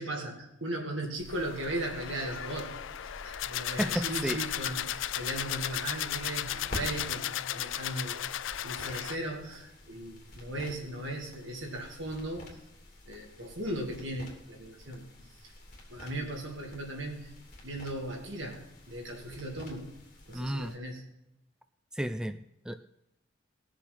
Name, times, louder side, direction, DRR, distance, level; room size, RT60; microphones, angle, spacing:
voice 1, 0.0-12.6 13.1-15.1 15.4-15.5 15.9-17.3 17.6-19.9 20.3-21.0, right 1 dB, 80° right, 1 dB, 2.8 m, -37 dB
sound 1, 1.2-20.8, left 1 dB, 40° left, 3.0 m, -49 dB
sound 2, 1.3-9.2, left 12 dB, 85° left, 0.4 m, -35 dB
voice 2, 3.8-4.4 20.3-20.7 21.9-22.4 22.7-22.8, equal, 5° right, 10 dB, 0.4 m, -32 dB
19.0 x 6.7 x 5.8 m, 0.87 s
head